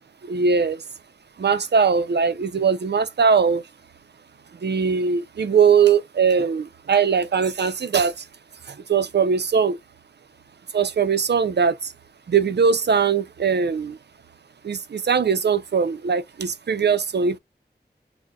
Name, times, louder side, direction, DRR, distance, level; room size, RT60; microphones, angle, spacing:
voice 1, 0.2-0.8 1.4-3.6 4.6-8.3 8.7-9.8 10.7-11.9 12.3-14.0 14.6-17.4, right 6 dB, 70° right, 0.4 m, -20 dB
2.3 x 2.1 x 3.8 m
wide cardioid pair, 55°, 18 cm